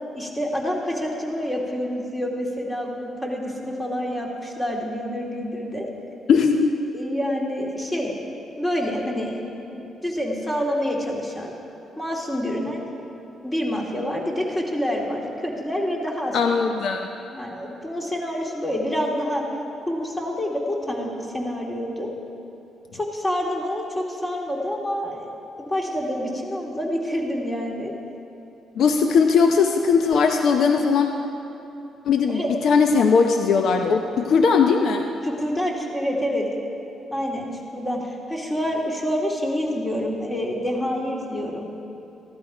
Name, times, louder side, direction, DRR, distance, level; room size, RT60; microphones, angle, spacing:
voice 1, 0.1-5.9 6.9-8.1 8.6-9.4 9.7-11.5 12.0-12.8 13.4-16.4 17.3-19.4 19.9-22.1 22.9-25.3 25.6-27.9 32.3-32.5 35.2-36.5 37.1-41.7, equal, 15° left, -1 dB, 2.4 m, -27 dB
voice 2, 6.3-6.7 16.3-17.1 28.8-31.1 32.0-35.1, left 5 dB, 65° left, 5 dB, 0.7 m, -19 dB
15.0 x 11.5 x 5.0 m, 2.9 s
cardioid pair, 90°, 0 cm